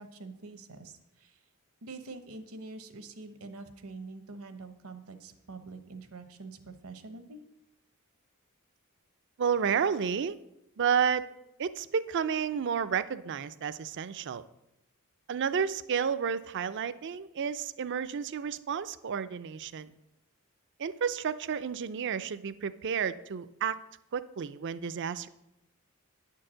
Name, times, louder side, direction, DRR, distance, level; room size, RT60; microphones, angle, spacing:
voice 1, 0.0-1.4 1.8-7.4, right 3 dB, 75° right, 9 dB, 1.0 m, -45 dB
voice 2, 9.4-10.4 10.8-11.3 11.6-14.4 15.3-19.9 20.8-23.8 24.1-25.3, right 7 dB, 55° right, 14 dB, 0.4 m, -31 dB
9.6 x 4.6 x 7.5 m, 0.88 s
head